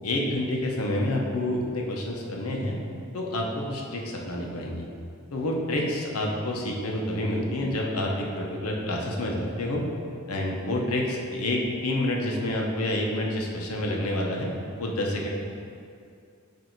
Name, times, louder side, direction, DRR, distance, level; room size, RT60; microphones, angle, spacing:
voice 1, 0.0-2.8 3.1-4.9 5.3-9.8 10.3-14.5 14.8-15.3, left 1 dB, 80° left, -1 dB, 0.8 m, -28 dB
7.8 x 2.7 x 4.5 m, 2.4 s
head